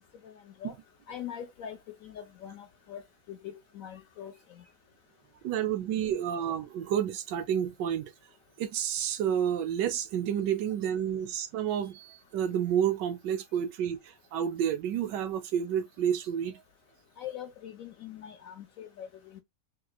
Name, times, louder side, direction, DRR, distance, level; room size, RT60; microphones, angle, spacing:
voice 1, 1.1-3.0 3.3-4.3 17.2-19.1 19.3-19.4, left 9 dB, 70° left, 0.8 m, -42 dB
voice 2, 5.4-8.1 8.6-16.6, right 9 dB, 80° right, 1.3 m, -30 dB
3.6 x 3.0 x 2.3 m
omnidirectional pair, 1.9 m